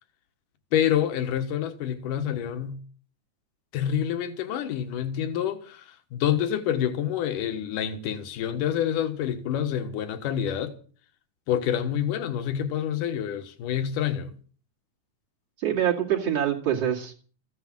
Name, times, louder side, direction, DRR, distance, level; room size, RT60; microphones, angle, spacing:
voice 1, 0.7-2.8 3.7-10.7 11.5-14.3, left 10 dB, 75° left, 3.0 m, -27 dB
voice 2, 15.6-17.1, right 10 dB, 50° right, 3.4 m, -25 dB
15.0 x 9.9 x 7.6 m
omnidirectional pair, 3.9 m